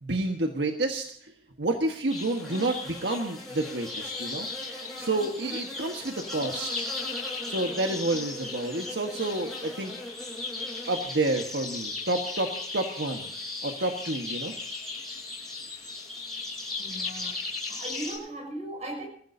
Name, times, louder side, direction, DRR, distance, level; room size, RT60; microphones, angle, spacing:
voice 1, 0.0-1.0 1.6-4.5 5.0-6.9 7.4-9.9 10.9-13.3 13.6-14.5, right 2 dB, 80° right, 1.5 m, -29 dB
sound 1, 2.1-18.2, left 3 dB, ahead, 7.8 m, -36 dB
voice 2, 16.8-19.1, right 1 dB, 40° right, 6.5 m, -38 dB
26.5 x 15.5 x 2.8 m
head